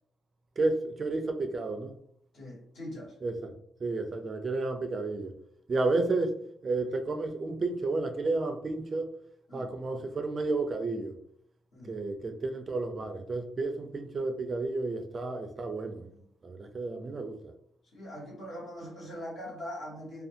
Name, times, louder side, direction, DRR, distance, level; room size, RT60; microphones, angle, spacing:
voice 1, 0.6-2.0 3.2-5.3 5.7-6.4 6.6-9.1 9.5-11.1 11.8-16.1 16.4-17.5, right 3 dB, 35° right, 0.3 m, -31 dB
voice 2, 2.3-3.1 9.5-9.7 11.7-12.0 16.1-16.2 17.9-20.2, equal, 60° left, 1.4 m, -42 dB
2.5 x 2.3 x 2.7 m
cardioid pair, 125°, 0 cm